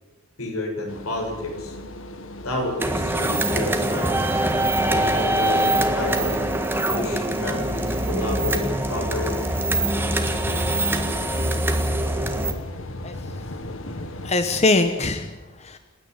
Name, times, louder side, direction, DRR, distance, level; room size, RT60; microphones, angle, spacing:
voice 1, 0.4-1.7 2.4-4.2 4.9-6.5 6.9-9.4, left 1 dB, 85° left, 0 dB, 7.8 m, -30 dB
sound 1, 0.9-14.4, left 1 dB, 65° left, 1.6 m, -37 dB
sound 2, 2.8-12.5, right 1 dB, 10° right, 1.7 m, -23 dB
voice 2, 13.0-13.4 14.2-15.8, left 2 dB, 30° left, 8 dB, 1.2 m, -23 dB
29.0 x 10.0 x 9.8 m, 1.1 s
head